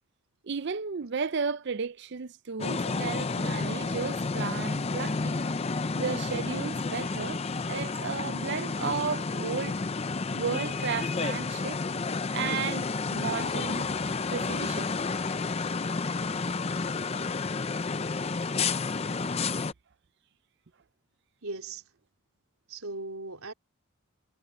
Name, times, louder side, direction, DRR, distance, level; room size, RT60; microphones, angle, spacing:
voice 1, 0.4-5.4 5.9-9.8 10.3-11.8 12.3-13.9 14.3-14.9, right 5 dB, 50° right, 0.5 m, -34 dB
sound 1, 2.6-19.7, left 4 dB, 25° left, 0.5 m, -31 dB
voice 2, 21.4-21.9 22.7-23.5, right 2 dB, 75° right, 4.1 m, -38 dB
head